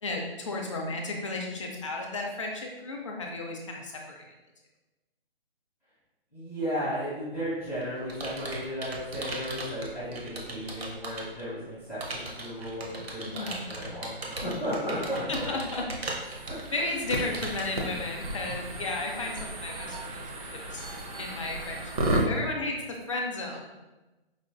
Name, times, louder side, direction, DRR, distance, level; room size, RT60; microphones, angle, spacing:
voice 1, 0.0-4.2 13.2-13.6 15.3-15.8 16.7-20.2 20.7-20.9 21.2-21.8 22.1-22.8 23.1-23.6, left 2 dB, 30° left, 0 dB, 0.4 m, -33 dB
voice 2, 6.3-15.8 16.5-16.6, equal, 5° right, -14 dB, 1.1 m, -34 dB
Computer keyboard, 7.4-11.4 12.0-17.8, right 2 dB, 70° right, 0.8 m, -38 dB
sound 1, 16.2-22.2, right 1 dB, 35° right, 0.5 m, -33 dB
4.9 x 2.3 x 2.2 m, 1.1 s
hypercardioid pair, 150°, 32 cm